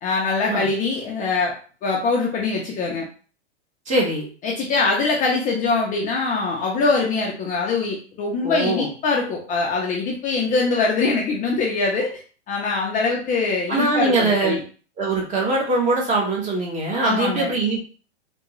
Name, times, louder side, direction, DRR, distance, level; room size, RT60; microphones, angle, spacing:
voice 1, 0.0-1.5 1.8-3.1 4.4-12.2 12.5-14.6 17.0-17.6, left 3 dB, 25° left, -2 dB, 0.6 m, -23 dB
voice 2, 3.9-4.3 8.4-8.9 13.7-14.6 15.0-17.8, right 2 dB, 20° right, -2 dB, 1.1 m, -22 dB
3.5 x 2.2 x 3.0 m, 0.39 s
hypercardioid pair, 120°, 34 cm